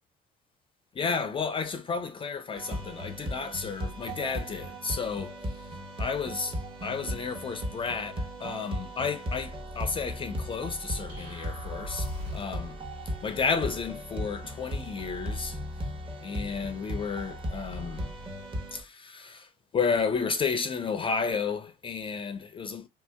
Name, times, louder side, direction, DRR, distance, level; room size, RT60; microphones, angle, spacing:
voice 1, 1.0-5.3 6.0-6.6 6.8-12.8 13.2-15.6 16.2-18.1 18.7-19.5 19.7-22.9, left 5 dB, 30° left, 0.4 m, -32 dB
sound 1, 2.5-18.8, equal, 30° right, 1.1 m, -37 dB
sound 2, 11.1-12.7, left 1 dB, 80° right, 1.8 m, -40 dB
2.8 x 2.7 x 3.4 m
cardioid pair, 110°, 17 cm